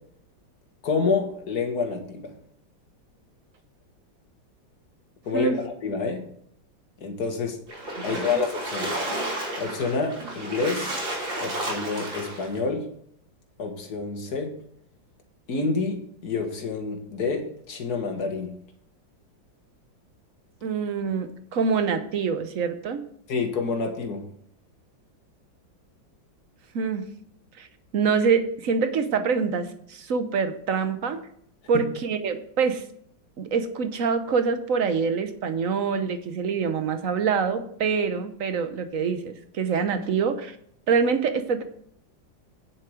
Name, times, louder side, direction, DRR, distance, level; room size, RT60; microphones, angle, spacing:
voice 1, 0.8-2.3 5.2-6.2 7.0-7.6 8.0-9.0 9.6-10.9 11.4-12.9 13.6-14.5 15.5-18.5 23.3-24.2 31.7-31.8, left 4 dB, 55° left, 4 dB, 2.1 m, -28 dB
Splash splatter, 7.7-12.5, right 1 dB, 75° right, 4.0 m, -32 dB
voice 2, 8.0-8.4 20.6-23.0 26.7-27.0 27.6-27.7 27.9-31.2 31.7-32.8 33.4-40.6 40.9-41.6, right 5 dB, 55° right, 9 dB, 1.1 m, -25 dB
9.5 x 7.5 x 5.0 m, 0.66 s
omnidirectional pair, 2.1 m